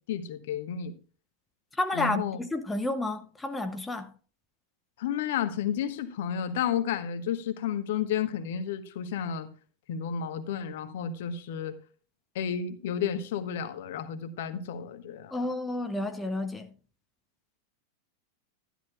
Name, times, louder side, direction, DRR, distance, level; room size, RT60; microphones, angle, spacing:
voice 1, 0.1-0.9 1.9-2.4 5.0-9.5 9.9-11.7 12.3-15.4, left 8 dB, 55° left, 1.2 m, -32 dB
voice 2, 1.8-4.1 15.3-16.7, left 2 dB, 10° left, 0.7 m, -31 dB
12.5 x 11.0 x 2.4 m
figure-of-eight pair, 90°, 0 cm